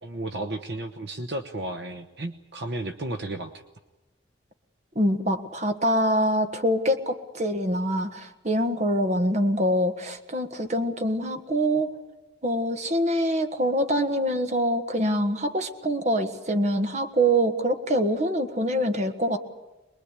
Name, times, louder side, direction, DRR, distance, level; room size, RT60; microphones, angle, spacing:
voice 1, 0.0-3.5, right 1 dB, 60° right, 7 dB, 1.1 m, -33 dB
voice 2, 4.9-11.9 12.4-19.4, equal, 35° right, 7 dB, 1.6 m, -25 dB
24.0 x 21.5 x 8.4 m, 1.1 s
head